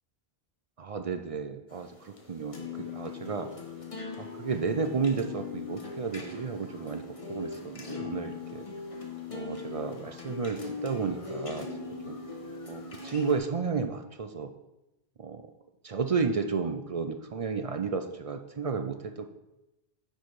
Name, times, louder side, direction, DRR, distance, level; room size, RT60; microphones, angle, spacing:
voice 1, 0.8-3.5 4.2-7.0 7.3-8.7 9.3-11.7 12.1-12.2 12.7-14.5 15.2-15.5 15.8-19.2, right 5 dB, 45° right, 7 dB, 0.5 m, -32 dB
sound 1, 1.7-13.4, left 4 dB, 35° left, 1.1 m, -40 dB
9.9 x 4.5 x 4.7 m, 0.93 s
omnidirectional pair, 1.1 m